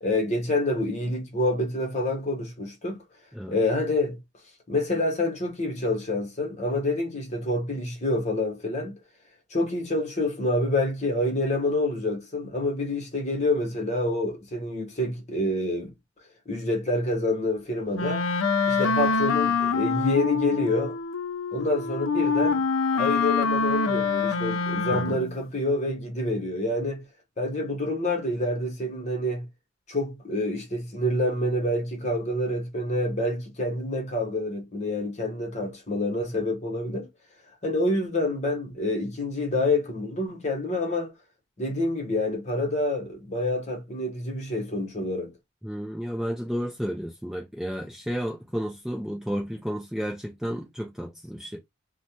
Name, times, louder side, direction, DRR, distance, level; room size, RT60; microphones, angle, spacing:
voice 1, 0.0-3.0 3.5-4.2 4.7-9.0 9.5-15.9 16.5-18.2 18.7-21.0 21.5-22.6 22.9-27.0 27.4-29.5 29.9-37.1 37.6-41.1 41.6-45.3, left 1 dB, 35° left, 0.9 m, -27 dB
Wind instrument woodwind instrument, 17.9-25.4, left 4 dB, 85° left, 0.5 m, -25 dB
voice 2, 45.6-51.6, equal, ahead, 0.4 m, -32 dB
3.1 x 2.2 x 2.8 m
head